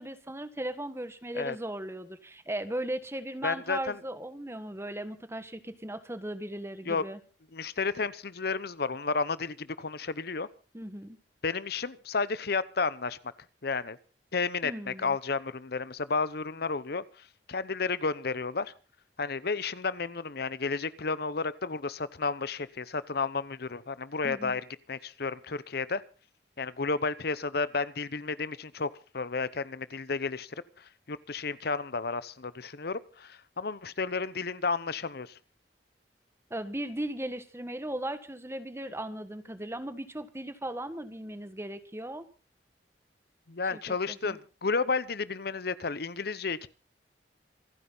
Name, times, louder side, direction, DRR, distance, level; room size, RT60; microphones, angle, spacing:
voice 1, 0.0-7.2 10.7-11.2 14.6-15.1 24.2-24.6 36.5-42.2 43.7-44.4, right 1 dB, 15° right, 11 dB, 1.5 m, -37 dB
voice 2, 3.4-4.0 6.8-7.0 7.5-10.5 11.4-13.2 13.6-14.0 14.3-18.7 19.2-24.6 24.9-26.0 26.6-35.4 43.5-46.7, left 4 dB, 60° left, 16 dB, 0.9 m, -32 dB
27.0 x 9.9 x 4.0 m, 0.35 s
head